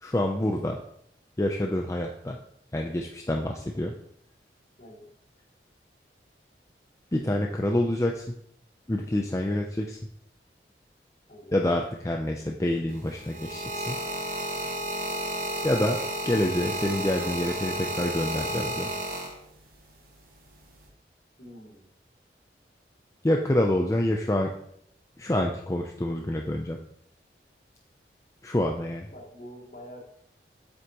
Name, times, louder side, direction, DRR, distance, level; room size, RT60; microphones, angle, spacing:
voice 1, 0.0-0.8 1.4-2.4 2.7-3.9 7.1-8.2 8.9-10.0 11.5-14.0 15.6-16.0 16.2-18.9 23.2-24.5 25.2-26.8 28.4-29.1, left 1 dB, 15° left, 2 dB, 0.5 m, -27 dB
voice 2, 4.8-5.1 11.3-11.5 21.4-21.9 29.1-30.0, equal, 50° left, -4 dB, 2.6 m, -46 dB
sound 1, 12.9-19.7 20.6-20.9, right 1 dB, 50° right, 1.5 m, -32 dB
8.0 x 7.9 x 3.0 m, 0.70 s
head